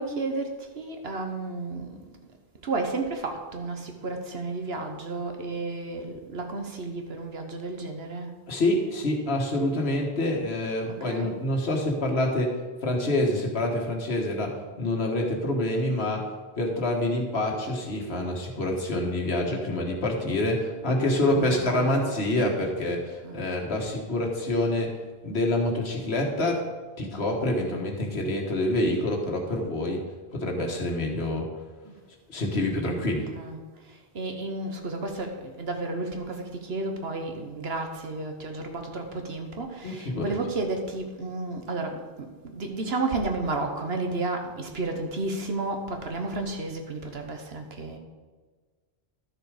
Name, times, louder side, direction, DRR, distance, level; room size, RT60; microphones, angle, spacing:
voice 1, 0.0-2.0 2.6-8.3 10.8-11.3 21.3-22.2 23.2-23.5 31.8-32.0 33.1-48.0, right 3 dB, 75° right, 4 dB, 1.5 m, -32 dB
voice 2, 8.5-12.6 12.8-24.9 25.2-26.6 27.0-30.0 30.3-31.5 32.3-33.3 39.8-40.3, left 1 dB, 80° left, 1 dB, 1.8 m, -27 dB
12.0 x 6.7 x 5.0 m, 1.4 s
omnidirectional pair, 1.1 m